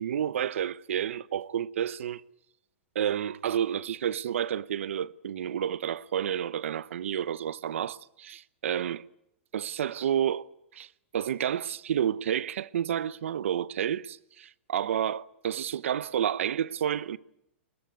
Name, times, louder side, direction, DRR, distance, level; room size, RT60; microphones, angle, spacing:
voice 1, 0.0-2.2 2.9-9.0 9.5-10.5 10.7-17.2, right 9 dB, 80° right, 0.9 m, -30 dB
22.5 x 21.0 x 9.4 m
supercardioid pair, 165°, 7 cm